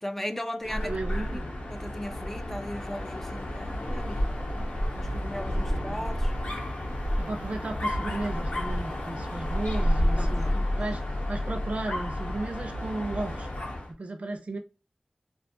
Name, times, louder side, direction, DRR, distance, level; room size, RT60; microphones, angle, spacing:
voice 1, 0.0-1.0 1.3-1.4 1.7-4.4 5.0-6.3 10.2-11.0, left 1 dB, 15° left, 0.3 m, -37 dB
Dog, 0.6-13.9, left 1 dB, 80° left, 0.7 m, -30 dB
voice 2, 0.6-1.5 5.5-6.0 7.2-13.5 14.0-14.6, right 2 dB, 65° right, 0.5 m, -35 dB
2.5 x 2.3 x 2.5 m
wide cardioid pair, 75°, 2 cm